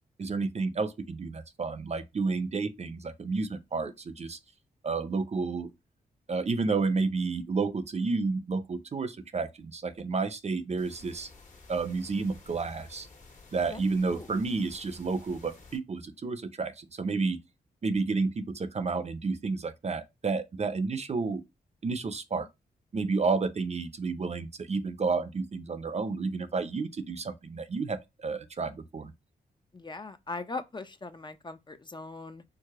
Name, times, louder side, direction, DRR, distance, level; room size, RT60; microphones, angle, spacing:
voice 1, 0.2-4.4 4.8-5.7 6.3-11.3 11.7-13.1 13.5-17.4 17.8-21.4 21.8-22.5 22.9-29.1, right 4 dB, 40° right, 0.6 m, -31 dB
sound 1, 10.8-15.8, left 3 dB, 45° left, 1.4 m, -53 dB
voice 2, 29.7-32.4, left 3 dB, 30° left, 0.6 m, -40 dB
4.7 x 2.1 x 4.7 m
cardioid pair, 60°, 16 cm